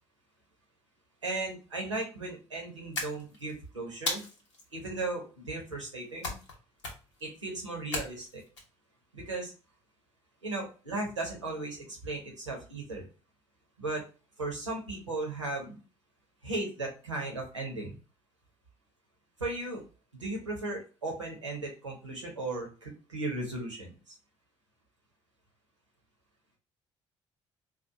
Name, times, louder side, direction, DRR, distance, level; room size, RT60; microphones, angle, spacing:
voice 1, 1.2-4.2 4.7-6.4 7.2-8.4 9.1-9.5 10.4-13.1 13.8-14.0 14.4-15.8 16.4-17.9 19.4-19.8 20.1-24.1, right 2 dB, 85° right, 0 dB, 0.9 m, -36 dB
sound 1, 2.9-3.5 4.1-4.6 6.2-6.5 6.8-7.2 7.9-8.6, left 2 dB, 80° left, 0.7 m, -35 dB
4.0 x 2.5 x 2.7 m, 0.34 s
figure-of-eight pair, 50°, 15 cm